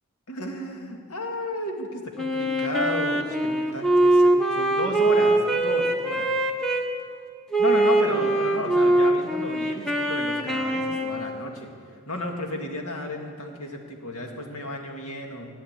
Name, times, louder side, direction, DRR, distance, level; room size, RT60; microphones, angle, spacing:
voice 1, 0.3-6.3 7.6-11.7 12.1-15.5, left 1 dB, 75° left, 2 dB, 2.1 m, -32 dB
Wind instrument woodwind instrument, 2.2-6.9 7.5-11.5, right 1 dB, ahead, 1.1 m, -22 dB
15.0 x 8.7 x 8.8 m, 2.1 s
head